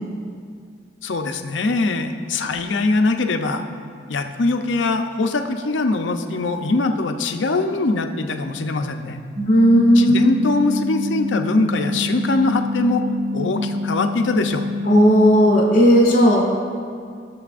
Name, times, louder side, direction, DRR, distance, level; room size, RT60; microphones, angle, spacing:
voice 1, 1.0-3.6 4.1-9.2 10.0-13.0 13.3-14.7, left 2 dB, 85° left, 6 dB, 0.6 m, -22 dB
sound 1, 9.4-15.2, left 3 dB, 30° right, 0.6 m, -27 dB
voice 2, 9.5-10.3 14.8-16.4, equal, 45° left, -3 dB, 2.3 m, -14 dB
16.5 x 7.0 x 2.5 m, 2.1 s
head